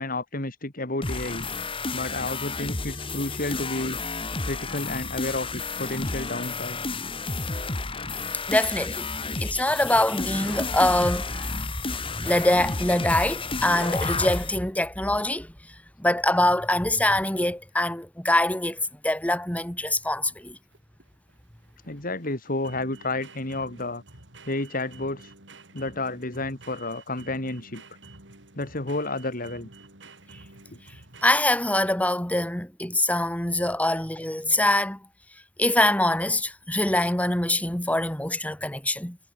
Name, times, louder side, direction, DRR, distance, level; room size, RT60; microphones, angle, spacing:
voice 1, 0.0-1.5 1.9-4.0 4.4-6.9 21.8-24.0 24.5-25.3 25.7-27.8 28.5-29.7 30.7-30.8 33.9-34.0, left 2 dB, 50° left, 3.6 m, -31 dB
sound 1, 1.0-14.6, left 3 dB, 30° left, 2.3 m, -31 dB
voice 2, 8.5-9.1 9.4-11.7 11.9-15.5 16.0-20.6 31.2-35.0 35.6-39.2, left 1 dB, 10° left, 2.3 m, -24 dB
sound 2, 20.4-32.0, right 3 dB, 75° right, 7.4 m, -50 dB
head